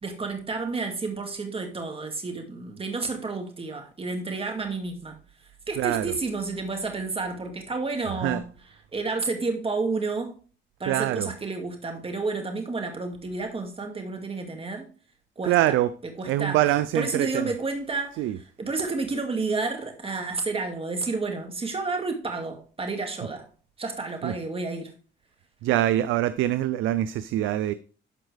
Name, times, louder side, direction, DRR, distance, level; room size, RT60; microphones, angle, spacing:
voice 1, 0.0-5.2 5.7-8.4 8.9-10.3 10.8-14.9 15.4-15.5 16.2-16.6 16.9-23.4 23.8-24.9, right 3 dB, 30° right, 2.2 m, -30 dB
voice 2, 5.8-6.1 8.2-8.4 10.9-11.3 15.4-15.9 16.2-17.5 18.2-18.4 24.2-24.3 25.6-27.7, right 14 dB, 90° right, 0.4 m, -24 dB
12.5 x 4.5 x 3.4 m
cardioid pair, 90°, 20 cm